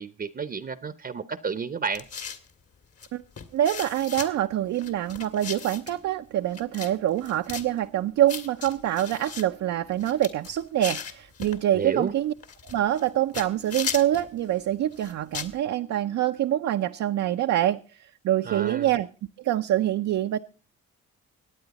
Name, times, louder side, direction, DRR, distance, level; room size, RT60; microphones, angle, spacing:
voice 1, 0.0-2.1 11.7-12.1 18.4-18.9, right 5 dB, 30° right, 0.8 m, -31 dB
sound 1, 1.9-2.5 3.0-3.1 3.4-4.3 4.8-6.0 6.5-6.9 7.2-7.7 8.3-9.4 9.9-11.6 12.4-13.1 13.3-14.3 14.9-15.6, left 6 dB, 50° left, 1.9 m, -36 dB
voice 2, 3.5-12.3 12.6-19.1 19.4-20.4, right 12 dB, 65° right, 0.6 m, -25 dB
24.5 x 9.0 x 4.0 m
cardioid pair, 90°, 30 cm